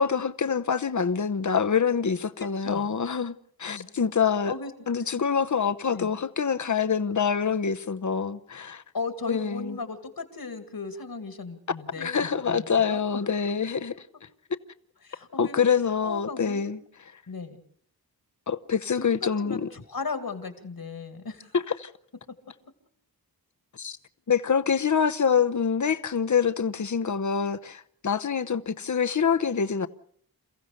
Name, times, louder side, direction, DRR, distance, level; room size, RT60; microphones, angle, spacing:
voice 1, 0.0-3.3 3.6-4.5 4.9-8.8 9.3-9.8 12.0-14.0 15.4-16.8 18.5-19.7 21.5-21.9 23.8-24.0 24.3-29.9, left 6 dB, 50° left, 0.9 m, -25 dB
voice 2, 2.4-2.9 3.7-3.9 4.5-4.7 5.9-6.1 8.9-13.2 15.0-15.6 16.0-16.8 17.3-17.6 19.0-21.6, left 4 dB, 70° left, 2.4 m, -36 dB
28.5 x 15.5 x 6.7 m
wide cardioid pair, 70°, 37 cm